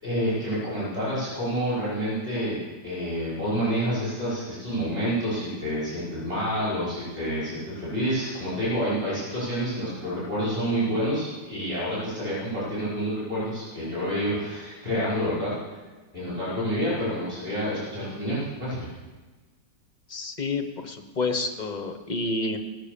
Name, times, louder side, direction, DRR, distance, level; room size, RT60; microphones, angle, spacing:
voice 1, 0.0-2.6 2.8-15.7 16.1-18.9, equal, 35° right, -9 dB, 5.8 m, -28 dB
voice 2, 20.1-22.6, left 3 dB, 35° left, 5 dB, 0.8 m, -29 dB
19.0 x 6.3 x 6.9 m, 1.3 s
omnidirectional pair, 1.8 m